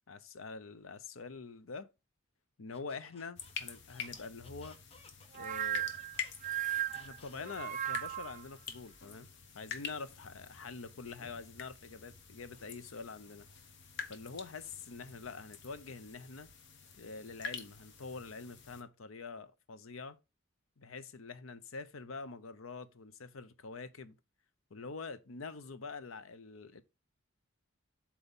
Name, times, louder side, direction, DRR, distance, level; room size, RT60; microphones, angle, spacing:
voice 1, 0.1-1.9 2.6-4.8 5.3-5.9 6.9-9.3 9.5-13.5 14.1-16.5 17.0-20.2 20.8-24.2 24.7-26.8, left 4 dB, 85° left, 0.7 m, -45 dB
Squeak, 2.7-7.8, left 3 dB, 30° left, 0.9 m, -60 dB
sound 1, 3.4-18.8, left 6 dB, 60° left, 1.1 m, -47 dB
sound 2, 5.3-8.4, right 11 dB, 40° right, 0.3 m, -36 dB
8.0 x 3.1 x 5.4 m
head